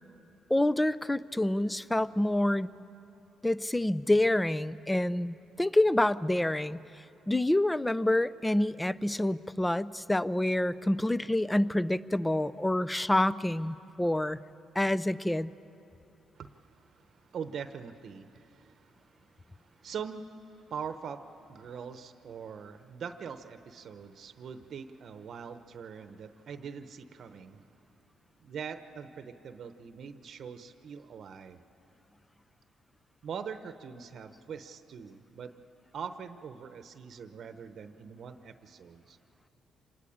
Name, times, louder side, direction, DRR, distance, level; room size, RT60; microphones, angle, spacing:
voice 1, 0.5-2.7 3.4-6.8 7.3-14.4 14.8-15.5, left 1 dB, 10° left, 17 dB, 0.5 m, -27 dB
voice 2, 16.3-27.7 28.4-31.6 33.2-35.5 35.9-39.2, right 6 dB, 60° right, 9 dB, 0.9 m, -43 dB
26.5 x 20.5 x 8.7 m, 2.9 s
cardioid pair, 90°, 0 cm